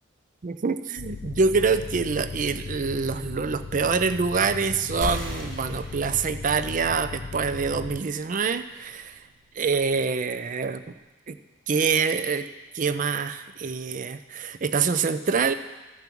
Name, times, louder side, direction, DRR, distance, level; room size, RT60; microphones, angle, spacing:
voice 1, 0.4-9.1 9.6-10.8 11.3-11.4 11.7-12.5 12.7-15.5, right 5 dB, 40° right, 11 dB, 0.4 m, -25 dB
sound 1, 1.0-8.0, left 3 dB, 45° left, 0.4 m, -37 dB
sound 2, 5.0-10.1, left 1 dB, 85° right, 2.6 m, -39 dB
14.5 x 5.4 x 6.0 m, 1.1 s
head